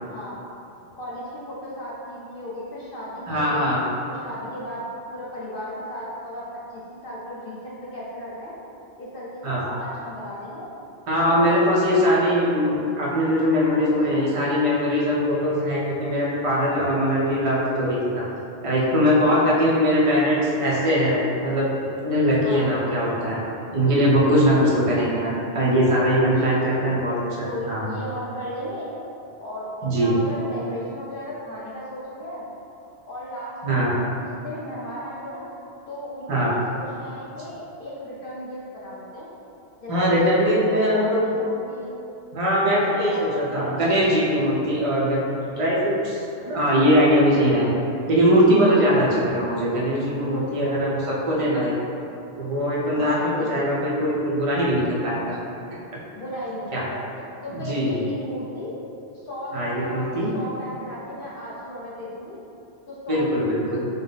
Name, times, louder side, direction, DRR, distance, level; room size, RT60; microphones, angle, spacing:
voice 1, 1.0-3.7 4.1-4.8 5.1-8.5 9.0-10.7 11.2-12.3 13.7-14.3 19.2-19.6 21.4-21.6 22.4-22.7 24.4-24.7 26.3-26.9 27.4-28.9 29.4-32.5 33.0-35.5 35.9-39.3 39.8-42.0 42.6-43.9 48.6-48.9 50.2-50.8 51.4-51.6 53.0-53.5 56.2-58.7 59.1-62.4 62.9-63.2, left 1 dB, 60° left, -7 dB, 0.8 m, -35 dB
voice 2, 3.3-3.8 9.4-9.6 11.1-18.3 18.6-21.7 22.0-23.4 23.7-27.9 29.8-30.1 33.6-33.9 36.3-36.5 39.9-41.2 42.3-45.2 45.5-47.8 48.1-51.0 51.3-51.7 52.4-55.4 56.7-56.8 57.5-58.0 59.5-60.3 63.1-63.9, equal, 35° right, -6 dB, 0.8 m, -21 dB
5.4 x 2.1 x 3.9 m, 2.8 s
omnidirectional pair, 1.1 m